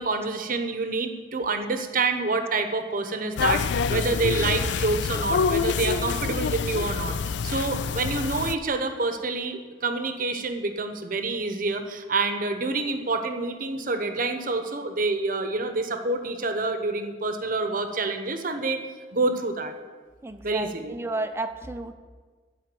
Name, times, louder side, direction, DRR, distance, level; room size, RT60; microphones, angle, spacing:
voice 1, 0.0-18.8 19.1-19.7 20.4-20.9, right 3 dB, 50° right, 7 dB, 0.9 m, -27 dB
sound 1, 3.4-8.5, left 6 dB, 75° left, 0.4 m, -26 dB
voice 2, 20.2-21.9, right 2 dB, 15° right, 8 dB, 0.6 m, -32 dB
12.0 x 4.9 x 7.7 m, 1.5 s
head